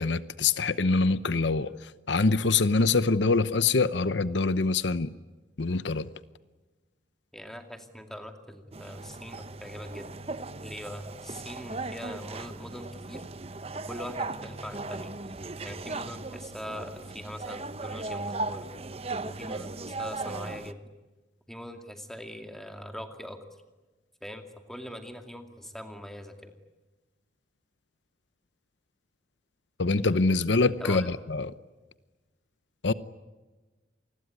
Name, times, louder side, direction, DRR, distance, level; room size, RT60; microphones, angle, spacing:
voice 1, 0.0-5.1 5.6-6.1 29.8-31.5 32.8-32.9, left 3 dB, 75° left, 0.8 m, -25 dB
voice 2, 7.3-10.1 10.6-13.2 13.7-15.1 15.6-18.7 19.2-20.8 21.5-23.4 24.2-26.5 30.8-31.2, equal, ahead, 2.4 m, -42 dB
sound 1, 8.7-20.7, right 3 dB, 35° right, 0.9 m, -37 dB
28.0 x 21.0 x 9.5 m
head